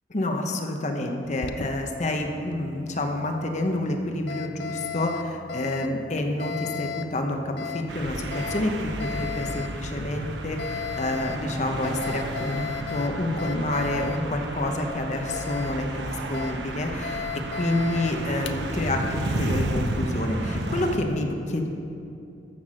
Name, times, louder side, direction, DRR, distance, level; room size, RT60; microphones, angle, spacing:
voice 1, 0.1-8.7 9.0-17.3 17.5-21.7, left 1 dB, 40° left, 3 dB, 0.9 m, -28 dB
Alarm, 1.2-20.6, left 7 dB, 70° left, 0.5 m, -38 dB
sound 1, 7.9-21.0, right 1 dB, 75° right, 0.9 m, -32 dB
14.0 x 6.0 x 6.4 m, 2.6 s
head